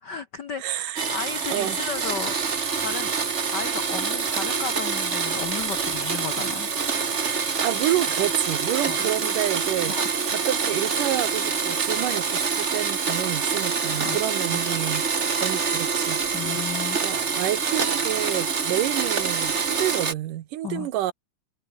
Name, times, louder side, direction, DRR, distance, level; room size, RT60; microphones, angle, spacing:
voice 1, 0.0-2.4 2.8-3.1 3.5-6.7 8.8-9.0 9.9-10.0 14.0-14.2 14.5-14.6 16.3-17.2 20.6-20.9, left 6 dB, 70° left, 1.0 m, -34 dB
voice 2, 0.6-1.0 1.5-1.8 7.6-10.0 10.3-15.0 15.4-16.2 17.0-21.1, right 14 dB, 85° right, 2.8 m, -28 dB
sound 1, 1.0-19.6, left 6 dB, 50° left, 3.7 m, -50 dB
Domestic sounds home sounds, 1.0-20.1, right 5 dB, 40° right, 1.1 m, -26 dB
omnidirectional pair, 3.6 m